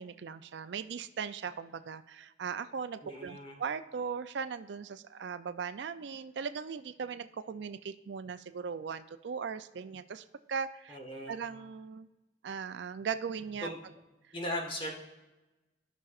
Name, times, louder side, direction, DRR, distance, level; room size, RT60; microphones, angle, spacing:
voice 1, 0.0-11.0 11.3-12.1 12.4-13.7, right 6 dB, 70° right, 11 dB, 0.4 m, -38 dB
voice 2, 3.0-3.6 10.9-11.4 13.6-13.8 14.3-14.9, left 1 dB, 30° left, 0 dB, 1.5 m, -38 dB
15.5 x 5.9 x 2.4 m, 1.1 s
head